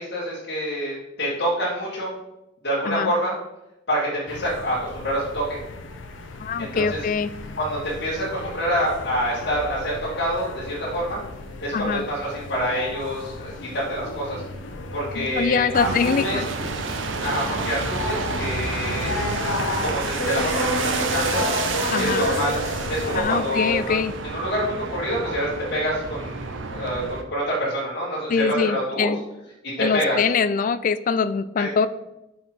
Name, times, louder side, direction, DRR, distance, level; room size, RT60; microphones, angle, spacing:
voice 1, 0.0-2.1 2.6-3.3 3.9-5.6 6.6-7.0 7.6-11.2 11.6-14.4 14.9-16.4 17.2-19.1 19.8-21.4 22.0-22.5 22.9-24.0 24.2-29.1 29.8-30.2 31.6-31.7, equal, 60° left, -8 dB, 2.0 m, -26 dB
sound 1, 4.3-23.2, left 2 dB, 75° left, 1.0 m, -32 dB
voice 2, 6.4-7.3 11.7-12.1 15.2-16.5 21.9-22.3 23.1-24.1 28.3-29.2 29.8-31.9, left 6 dB, 45° left, 15 dB, 0.3 m, -23 dB
sound 2, 15.7-27.2, right 4 dB, 80° right, 0.7 m, -29 dB
6.1 x 6.0 x 4.6 m, 0.92 s
head